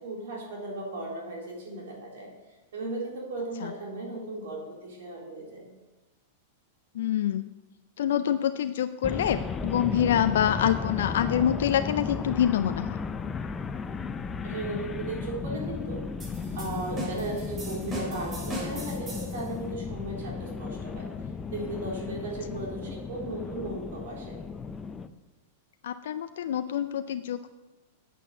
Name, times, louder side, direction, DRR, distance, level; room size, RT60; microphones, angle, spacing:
voice 1, 0.0-2.3 2.7-5.7 14.4-16.0 16.5-21.1 21.5-24.4, right 2 dB, 70° right, -2 dB, 3.8 m, -36 dB
voice 2, 6.9-7.5 8.0-13.0 25.8-27.5, left 10 dB, 70° left, 10 dB, 0.4 m, -26 dB
sound 1, 9.0-25.1, left 5 dB, 20° left, 0.7 m, -35 dB
sound 2, 16.2-19.5, right 1 dB, 25° right, 4.6 m, -39 dB
8.3 x 8.3 x 7.0 m, 1.1 s
hypercardioid pair, 105°, 0 cm